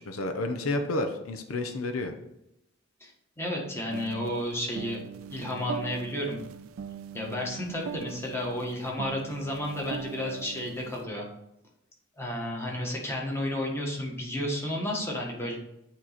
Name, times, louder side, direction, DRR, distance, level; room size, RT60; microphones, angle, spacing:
voice 1, 0.1-2.1, left 2 dB, 85° left, 7 dB, 0.7 m, -30 dB
voice 2, 3.0-6.4 7.1-11.3 12.2-15.6, left 1 dB, 10° left, -2 dB, 1.3 m, -32 dB
sound 1, 3.9-11.1, right 7 dB, 85° right, 0.4 m, -41 dB
8.8 x 3.0 x 4.1 m, 0.83 s
head